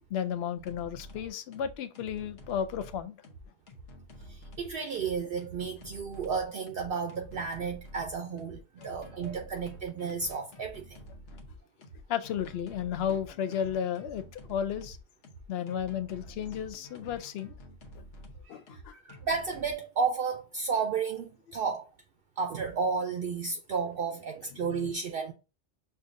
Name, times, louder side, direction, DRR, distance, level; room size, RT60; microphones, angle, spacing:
voice 1, 0.1-3.2 8.8-9.1 12.1-15.0 15.5-17.5 18.5-19.0 24.6-24.9, left 8 dB, 70° left, 0.8 m, -33 dB
sound 1, 0.6-19.7, equal, 90° left, 1.2 m, -49 dB
voice 2, 4.3-11.0 18.5-18.6 18.9-21.9 22.4-25.3, right 5 dB, 60° right, 0.7 m, -32 dB
6.6 x 2.5 x 2.5 m
omnidirectional pair, 1.2 m